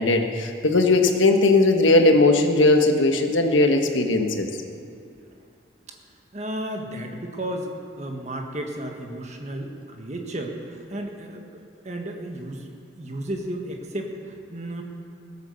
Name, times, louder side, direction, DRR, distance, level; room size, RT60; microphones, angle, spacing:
voice 1, 0.0-4.5, left 2 dB, 85° left, 5 dB, 1.3 m, -18 dB
voice 2, 6.3-7.7 8.0-14.8, right 1 dB, 35° right, 2 dB, 1.5 m, -33 dB
17.0 x 8.2 x 6.9 m, 2.5 s
head